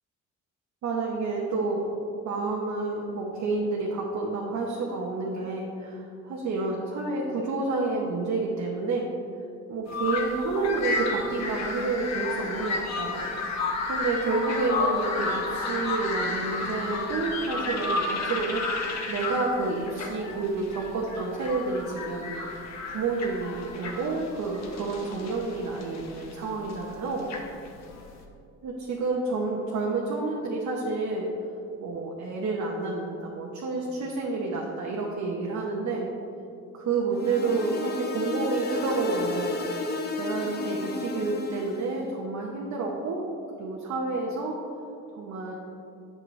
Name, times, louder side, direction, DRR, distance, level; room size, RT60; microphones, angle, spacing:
voice 1, 0.8-1.9 2.2-9.1 9.7-13.6 13.9-22.3 22.9-27.3 28.6-31.3 31.8-36.1 36.7-39.6 40.2-43.2 43.5-44.6 45.1-45.5, right 3 dB, 65° right, -2 dB, 0.9 m, -29 dB
sound 1, 9.9-28.2, left 3 dB, 60° left, 0.9 m, -32 dB
sound 2, 37.1-41.9, left 3 dB, 35° left, 0.8 m, -32 dB
7.9 x 6.1 x 3.2 m, 2.5 s
cardioid pair, 90°, 30 cm